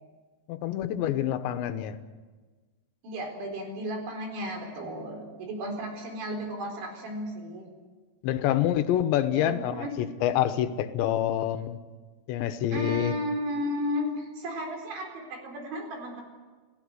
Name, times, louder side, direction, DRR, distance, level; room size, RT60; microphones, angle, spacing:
voice 1, 0.5-2.0 8.2-11.8 12.3-13.1, left 11 dB, 85° left, 10 dB, 3.3 m, -27 dB
voice 2, 3.0-7.7 9.3-9.9 12.7-16.2, equal, 80° right, 2 dB, 6.7 m, -34 dB
29.0 x 16.0 x 8.0 m, 1.3 s
omnidirectional pair, 5.2 m